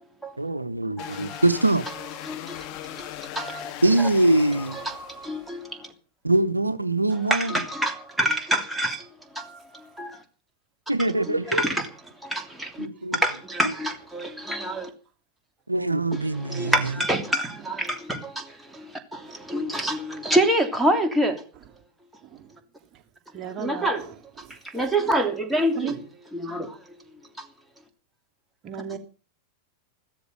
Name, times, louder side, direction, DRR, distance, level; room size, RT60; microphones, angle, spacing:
voice 1, 0.4-1.8 3.8-4.8 6.2-7.6 10.9-11.6 12.8-13.2 15.7-16.7, right 2 dB, 85° right, 0.9 m, -23 dB
sound 1, 1.0-5.5, left 12 dB, 40° left, 2.2 m, -39 dB
voice 2, 1.0-1.4 2.2-3.7 4.0-4.1 4.7-5.9 7.3-9.1 9.3-10.2 11.3-11.9 12.2-12.9 13.1-14.9 16.1-21.4 23.6-24.0 24.6-26.0 26.3-26.8, right 1 dB, 5° right, 3.1 m, -27 dB
voice 3, 16.6-16.9 19.3-19.4 19.7-20.0 22.2-22.5 22.9-23.0 23.3-24.9 25.7-25.9 28.6-29.0, right 9 dB, 30° right, 2.8 m, -37 dB
15.0 x 13.0 x 6.6 m
figure-of-eight pair, 90°, 0 cm